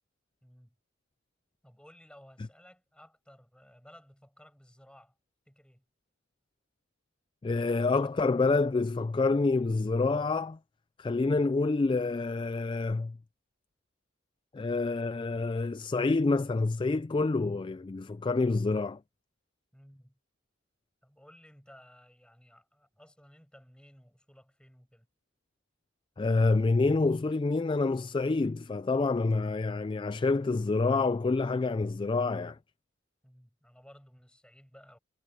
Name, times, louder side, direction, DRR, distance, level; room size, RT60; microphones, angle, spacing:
voice 1, 0.4-0.8 1.6-5.2 5.5-5.8 19.7-20.2 21.0-25.1 33.2-35.0, equal, 5° left, 7.9 m, -57 dB
voice 2, 7.4-10.6 11.0-13.2 14.5-19.0 26.2-32.6, left 3 dB, 25° left, 0.3 m, -27 dB
head